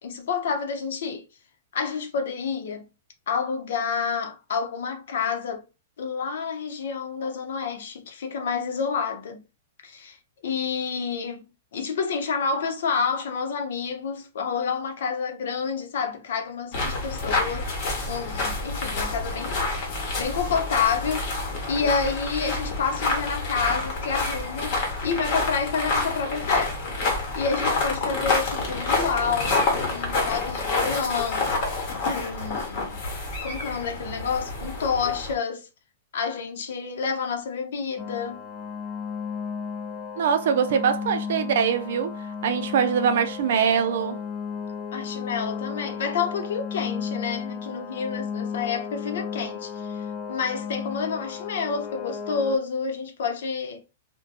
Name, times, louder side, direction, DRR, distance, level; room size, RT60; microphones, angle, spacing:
voice 1, 0.0-1.3 1.7-2.9 3.3-5.6 6.0-9.4 9.8-17.7 18.1-27.0 27.3-29.6 29.9-31.5 32.0-33.0 33.4-35.7 36.1-38.5 44.9-53.8, left 5 dB, 75° left, 0.7 m, -29 dB
sound 1, 16.7-35.3, left 3 dB, 45° left, 1.0 m, -28 dB
sound 2, 38.0-52.6, left 6 dB, 25° left, 0.3 m, -34 dB
voice 2, 40.2-42.1 42.4-44.2, right 7 dB, 65° right, 0.4 m, -23 dB
2.6 x 2.2 x 2.4 m
hypercardioid pair, 155°, 0 cm